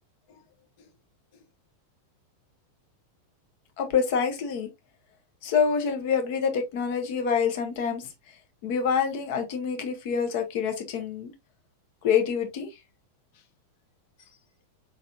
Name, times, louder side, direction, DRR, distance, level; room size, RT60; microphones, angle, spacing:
voice 1, 3.8-4.7 5.4-8.1 8.6-11.3 12.0-12.7, left 6 dB, 50° left, 1.3 m, -26 dB
5.0 x 4.1 x 2.5 m
figure-of-eight pair, 90°, 0 cm